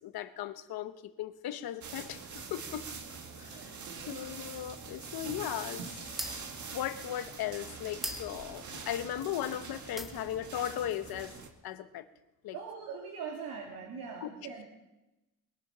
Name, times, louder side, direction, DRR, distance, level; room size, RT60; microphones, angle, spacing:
voice 1, 0.0-2.8 3.4-3.7 4.1-6.0 6.7-11.3 11.6-12.0 12.4-12.6 14.2-14.3, left 11 dB, 80° left, 11 dB, 1.0 m, -37 dB
sound 1, 1.8-11.5, right 5 dB, 55° right, 1.8 m, -44 dB
voice 2, 3.5-4.2 12.5-14.6, right 6 dB, 80° right, 0 dB, 2.5 m, -42 dB
sound 2, 4.0-9.6 9.9-10.5, equal, ahead, 1.2 m, -43 dB
22.5 x 8.8 x 5.5 m, 0.98 s
cardioid pair, 125°, 36 cm